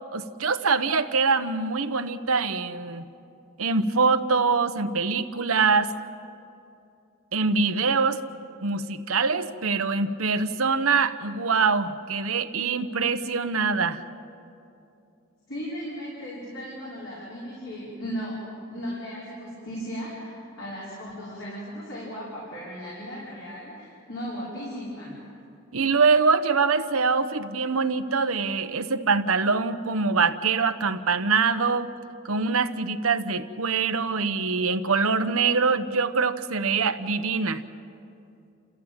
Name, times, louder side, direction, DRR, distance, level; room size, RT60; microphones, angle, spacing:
voice 1, 0.1-3.1 3.6-5.9 7.3-8.2 8.6-14.0 25.7-31.9 32.2-37.6, right 4 dB, 85° right, 9 dB, 1.1 m, -24 dB
voice 2, 15.5-18.4 18.7-25.2, equal, 60° left, -7 dB, 5.7 m, -36 dB
29.5 x 15.0 x 8.9 m, 2.6 s
head